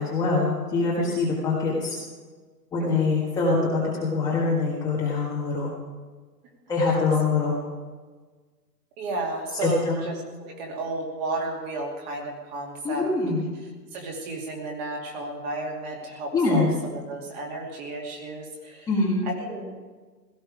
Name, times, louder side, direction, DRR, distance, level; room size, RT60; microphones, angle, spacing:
voice 1, 0.0-2.0 2.7-5.7 6.7-7.6 9.6-10.0 12.8-13.4 16.3-16.7 18.9-19.2, left 3 dB, 5° left, -6 dB, 1.5 m, -24 dB
voice 2, 2.8-3.1 9.0-10.1 10.4-13.1 13.9-18.9 19.3-19.8, right 2 dB, 25° right, 0 dB, 2.5 m, -33 dB
17.0 x 14.0 x 4.9 m, 1.4 s
hypercardioid pair, 150°, 50 cm